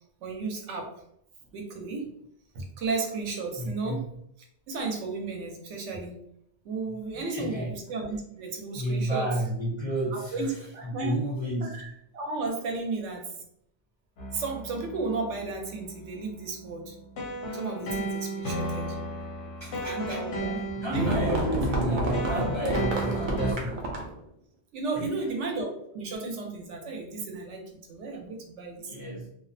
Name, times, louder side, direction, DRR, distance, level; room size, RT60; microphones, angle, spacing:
voice 1, 0.2-0.9 1.5-2.1 2.5-4.0 4.7-6.1 6.6-9.2 10.1-10.5 10.7-11.2 11.6-13.2 14.3-17.0 17.5-19.0 19.8-20.6 20.9-21.1 24.7-27.6 27.9-28.9, right 3 dB, 90° right, 2 dB, 1.0 m, -33 dB
voice 2, 3.6-4.0 6.9-7.7 8.7-11.9 18.6-18.9 19.4-20.3 20.7-24.0 24.9-25.3 28.8-29.3, right 1 dB, 35° left, -6 dB, 0.5 m, -32 dB
sound 1, 14.2-23.5, right 1 dB, 90° left, 1.0 m, -34 dB
sound 2, 20.9-24.2, right 1 dB, 55° right, 0.6 m, -30 dB
2.5 x 2.1 x 2.5 m, 0.74 s
omnidirectional pair, 1.2 m